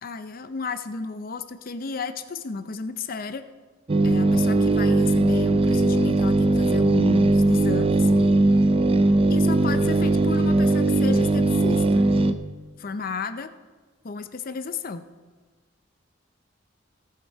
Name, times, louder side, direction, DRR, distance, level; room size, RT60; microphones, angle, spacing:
voice 1, 0.0-3.5 4.0-8.1 9.3-12.1 12.8-13.5 14.0-15.1, left 5 dB, 50° left, 10 dB, 0.6 m, -33 dB
sound 1, 3.9-12.3, right 2 dB, 30° right, 0.5 m, -19 dB
16.5 x 7.5 x 4.6 m, 1.3 s
head